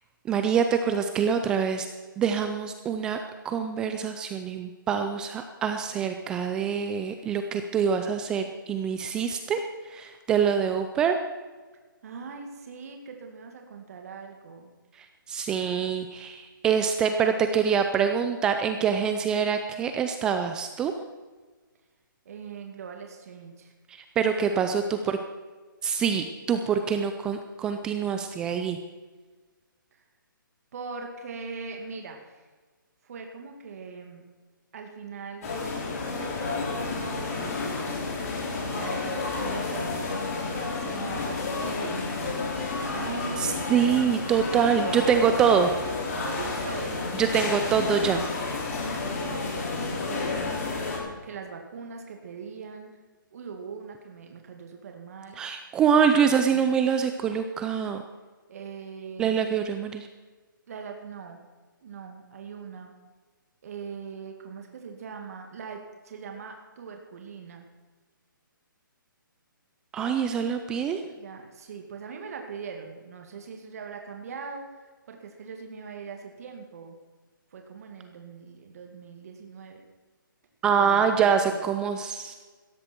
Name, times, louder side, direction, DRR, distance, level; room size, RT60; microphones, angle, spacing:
voice 1, 0.3-1.9 2.2-3.2 3.4-9.6 9.9-11.2 15.3-20.9 23.9-25.2 25.8-28.8 43.4-45.7 47.2-48.2 55.4-58.0 59.2-60.1 69.9-71.0 80.6-82.3, right 7 dB, 5° right, 7 dB, 0.3 m, -25 dB
voice 2, 12.0-14.7 22.3-23.7 24.5-25.0 29.9-30.0 30.7-32.4 33.0-34.2 34.7-35.7 36.1-37.8 38.6-44.1 44.5-45.1 46.2-47.0 48.8-50.7 51.2-52.9 53.3-55.4 55.9-56.9 58.5-59.5 60.7-61.4 61.8-62.9 63.6-67.6 71.0-74.7 75.1-77.0 77.5-79.8 80.8-81.6, right 5 dB, 45° right, 3 dB, 2.2 m, -41 dB
sound 1, 35.4-51.0, left 3 dB, 45° left, 4.9 m, -31 dB
16.5 x 14.0 x 4.5 m, 1.3 s
hypercardioid pair, 160°, 11 cm